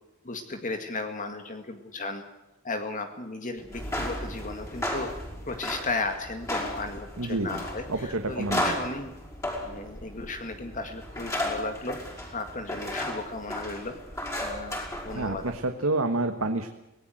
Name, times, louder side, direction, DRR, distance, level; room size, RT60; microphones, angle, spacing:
voice 1, 0.2-2.2 2.6-5.1 5.5-9.1 9.6-12.0 12.3-14.0 14.4-15.4, left 3 dB, 40° left, 6 dB, 2.0 m, -35 dB
sound 1, 3.7-15.6, left 1 dB, 15° left, 6.2 m, -34 dB
voice 2, 7.2-7.6 7.9-8.7 15.1-16.7, right 2 dB, 80° right, 6 dB, 1.5 m, -28 dB
24.5 x 18.5 x 7.9 m, 0.94 s
head